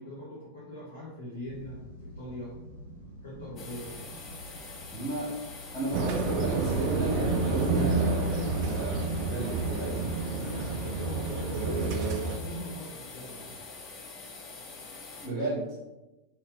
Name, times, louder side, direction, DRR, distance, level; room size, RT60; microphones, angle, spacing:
voice 1, 0.0-2.6 3.2-4.0 10.3-13.6, left 1 dB, 70° left, -8 dB, 1.0 m, -42 dB
sound 1, 1.4-11.3, equal, 65° right, 0.8 m, -46 dB
sound 2, 3.6-15.3, left 4 dB, 30° left, 0.5 m, -45 dB
voice 2, 4.9-5.3 5.7-10.1 11.5-12.2 15.2-15.6, right 2 dB, 10° left, -9 dB, 1.3 m, -33 dB
sound 3, 5.9-12.4, right 3 dB, 45° right, 0.4 m, -29 dB
2.8 x 2.7 x 3.6 m, 1.0 s
figure-of-eight pair, 90°, 0 cm